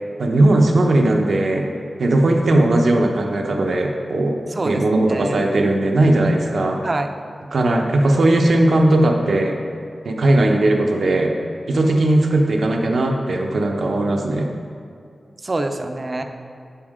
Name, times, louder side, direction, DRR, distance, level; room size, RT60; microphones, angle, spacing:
voice 1, 0.2-1.7 2.0-6.8 7.5-9.6 10.0-11.3 11.7-14.5, right 1 dB, 75° right, 2 dB, 0.9 m, -18 dB
voice 2, 4.5-5.4 6.8-7.1 15.4-16.2, right 2 dB, 35° right, 6 dB, 0.5 m, -25 dB
8.9 x 7.0 x 3.7 m, 2.4 s
wide cardioid pair, 120°, 0 cm